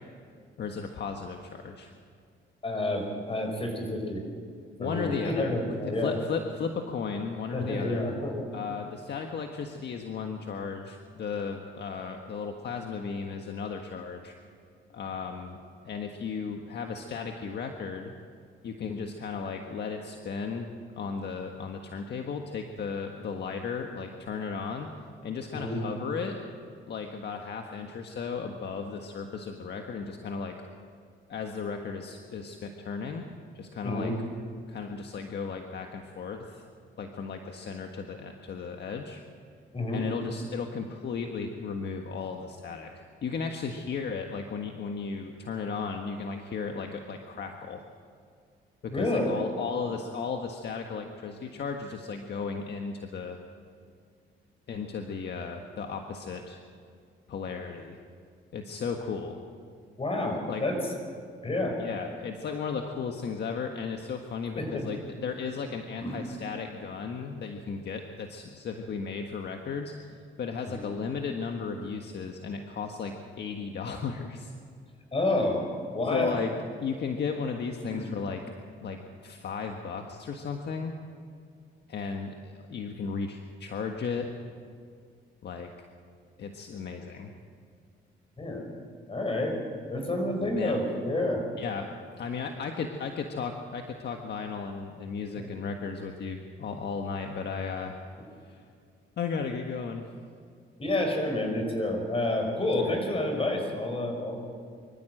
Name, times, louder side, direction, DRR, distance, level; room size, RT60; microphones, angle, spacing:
voice 1, 0.6-1.9 4.8-5.5 6.0-8.0 8.5-14.3 14.9-15.6 15.8-18.1 18.6-20.7 21.0-24.9 25.2-26.4 26.9-30.6 31.3-33.2 33.6-34.1 34.7-36.6 37.0-39.2 39.9-47.8 48.8-53.4 54.7-56.6 57.3-58.0 58.5-59.4 60.5-60.6 61.8-69.9 70.4-74.5 76.1-76.5 76.8-78.4 78.8-80.9 81.9-84.3 85.4-85.7 86.4-87.3 90.4-90.8 91.6-91.9 92.2-98.0 98.4-98.6 99.2-100.1 102.8-103.0, left 5 dB, 60° left, 3 dB, 1.6 m, -35 dB
voice 2, 2.6-4.2 4.8-6.2 7.5-8.5 25.5-25.8 33.8-34.1 39.7-40.0 48.9-49.4 60.0-60.8 61.4-61.8 64.6-64.8 66.0-66.2 70.7-70.9 75.1-75.7 75.9-76.4 77.9-78.1 88.4-88.7 89.1-89.6 89.9-91.4 100.8-104.4, left 1 dB, 30° left, 4 dB, 5.5 m, -29 dB
25.0 x 14.5 x 7.9 m, 2.2 s
cardioid pair, 90°, 20 cm